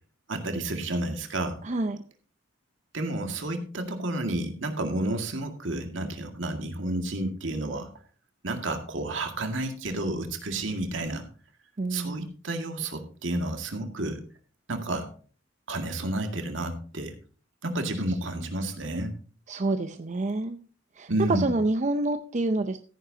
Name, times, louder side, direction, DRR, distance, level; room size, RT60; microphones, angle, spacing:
voice 1, 0.3-1.6 2.9-7.9 8.4-11.3 11.9-14.2 14.7-15.1 15.7-17.1 17.6-19.2 21.1-21.5, right 1 dB, 75° right, 5 dB, 2.1 m, -31 dB
voice 2, 1.6-2.0 11.8-12.3 19.5-20.6 21.0-22.8, right 2 dB, 40° right, 8 dB, 0.6 m, -27 dB
14.5 x 9.9 x 2.8 m, 0.40 s
head